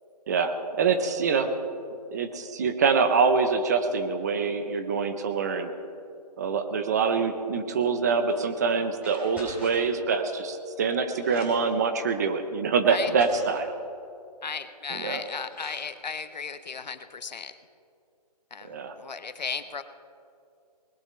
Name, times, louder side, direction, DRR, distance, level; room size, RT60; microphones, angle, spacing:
voice 1, 0.3-1.5 2.1-5.7 6.4-13.8 14.9-15.2 18.7-19.0, right 5 dB, 25° right, 8 dB, 0.7 m, -25 dB
sound 1, 8.3-8.5 9.0-9.9 10.8-10.9 11.1-11.8 12.6-12.7 13.0-13.7 15.0-15.1 15.4-15.9, left 1 dB, 5° right, 3.4 m, -46 dB
voice 2, 14.4-17.5 18.5-19.8, left 5 dB, 85° left, 10 dB, 1.0 m, -35 dB
21.0 x 19.5 x 3.3 m, 2.6 s
hypercardioid pair, 165°, 21 cm